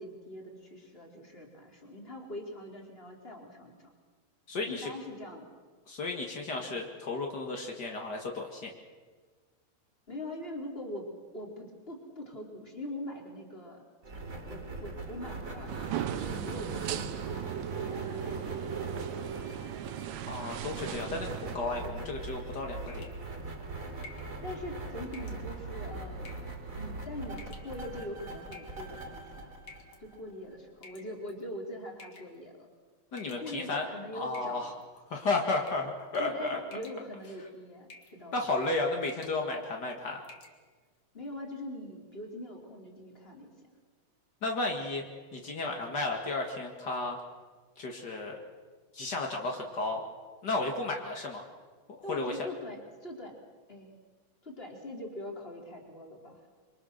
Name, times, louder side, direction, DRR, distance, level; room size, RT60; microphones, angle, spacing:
voice 1, 0.0-3.7 4.6-5.5 6.5-6.8 10.1-13.9 14.3-19.2 24.4-26.4 26.7-29.5 30.0-32.7 33.2-34.7 36.2-38.3 41.1-43.7 52.0-53.3 53.7-53.9 54.4-56.4, left 1 dB, 15° left, 1 dB, 3.2 m, -43 dB
voice 2, 4.5-4.9 5.9-8.7 20.2-23.0 33.1-33.8 34.1-34.7 35.1-36.6 38.3-40.2 44.4-45.0 45.3-47.2 47.8-48.4 48.9-50.0 50.4-51.4 52.1-52.4, left 3 dB, 65° left, 2 dB, 1.0 m, -33 dB
sound 1, 14.0-30.5, right 3 dB, 20° right, 2.8 m, -40 dB
sound 2, 15.7-21.6, right 12 dB, 75° right, 2.6 m, -38 dB
sound 3, 22.9-23.3 24.0-24.3 25.1-25.4 26.2-26.6 27.3-27.8 28.5-29.0 29.7-30.0 30.8-31.4 32.0-32.4 33.2-33.8 34.3-35.0 35.5-35.9 36.1-36.4 36.7-37.3 37.9-38.2 38.5-38.7 39.0-39.4 39.8-39.9 40.2-40.6, left 3 dB, 35° left, 2.3 m, -51 dB
27.0 x 24.0 x 6.6 m, 1.5 s
omnidirectional pair, 5.1 m